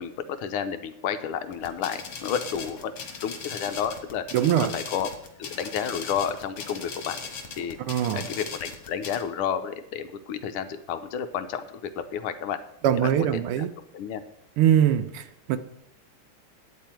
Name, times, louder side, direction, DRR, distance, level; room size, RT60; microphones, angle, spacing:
voice 1, 0.0-2.9 3.2-4.2 4.7-5.1 5.4-7.2 7.6-7.8 8.1-11.7 12.0-12.6 13.0-13.3 13.9-14.2, left 8 dB, 85° left, 1.7 m, -31 dB
sound 1, 1.5-9.2, left 5 dB, 65° left, 2.2 m, -38 dB
voice 2, 4.3-4.7 7.9-8.3 12.8-13.7 14.6-15.6, right 10 dB, 85° right, 1.6 m, -22 dB
10.5 x 9.0 x 4.4 m
omnidirectional pair, 2.4 m